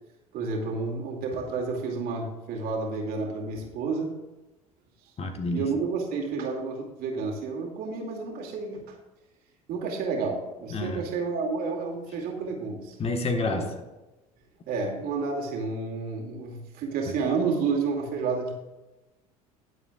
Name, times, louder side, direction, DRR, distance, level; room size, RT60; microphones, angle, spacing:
voice 1, 0.3-4.1 5.5-8.9 9.7-13.0 13.5-13.7 14.7-18.5, right 4 dB, 55° right, 1 dB, 2.6 m, -30 dB
voice 2, 5.2-5.7 10.7-11.0 13.0-13.7, left 3 dB, 35° left, 5 dB, 1.5 m, -28 dB
20.5 x 7.5 x 2.5 m, 1.0 s
figure-of-eight pair, 65°, 19 cm